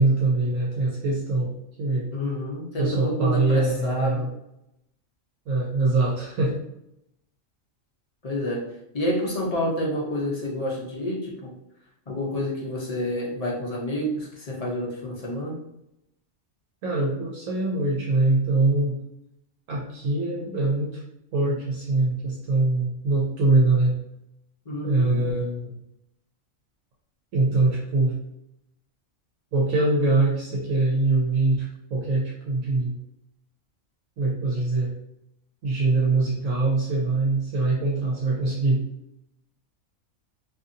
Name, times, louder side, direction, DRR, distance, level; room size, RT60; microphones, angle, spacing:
voice 1, 0.0-2.1 2.8-4.3 5.5-6.6 16.8-19.0 19.7-21.0 21.3-23.9 24.8-25.7 27.3-28.1 29.5-31.6 31.9-32.9 34.2-34.9 35.6-38.8, right 2 dB, 75° right, -4 dB, 1.0 m, -23 dB
voice 2, 2.1-4.3 8.2-8.7 8.9-11.5 12.1-15.6 24.7-25.3, equal, 45° left, -3 dB, 0.5 m, -29 dB
2.6 x 2.6 x 2.5 m, 0.82 s
omnidirectional pair, 1.4 m